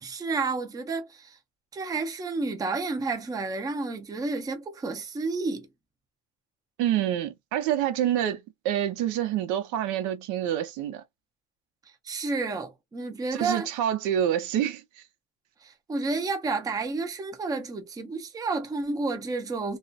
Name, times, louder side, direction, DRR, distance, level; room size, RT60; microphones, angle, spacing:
voice 1, 0.0-1.4 1.7-5.7 12.0-13.7 15.6-19.8, right 3 dB, 15° right, 0.4 m, -30 dB
voice 2, 6.8-11.0 13.3-14.8, right 11 dB, 80° right, 0.6 m, -27 dB
2.3 x 2.1 x 2.5 m
cardioid pair, 140°, 30 cm